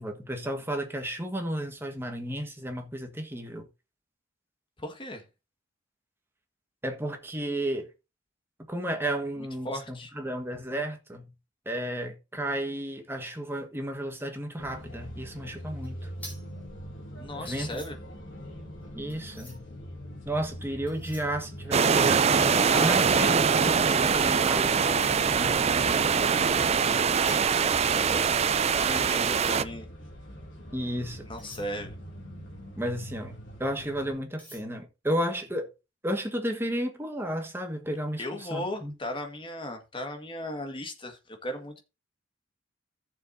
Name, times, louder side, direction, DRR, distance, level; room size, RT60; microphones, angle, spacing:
voice 1, 0.0-3.6 6.8-7.9 8.7-11.3 11.6-16.1 17.4-17.9 18.9-19.7 20.2-25.6 30.7-31.2 32.8-35.7 36.0-38.9, right 1 dB, 10° right, 1.4 m, -33 dB
voice 2, 4.8-5.2 9.6-10.1 17.2-18.0 22.6-23.4 26.2-29.9 31.3-32.0 38.2-41.8, left 1 dB, 25° left, 1.7 m, -37 dB
sound 1, 14.6-34.2, equal, 70° left, 3.7 m, -43 dB
sound 2, 15.8-19.8 20.6-22.3 22.6-24.3 24.8-32.8 33.2-33.4 33.8-34.6, equal, 10° left, 4.5 m, -51 dB
sound 3, 21.7-29.6, right 6 dB, 30° right, 0.4 m, -23 dB
14.5 x 7.1 x 2.7 m
head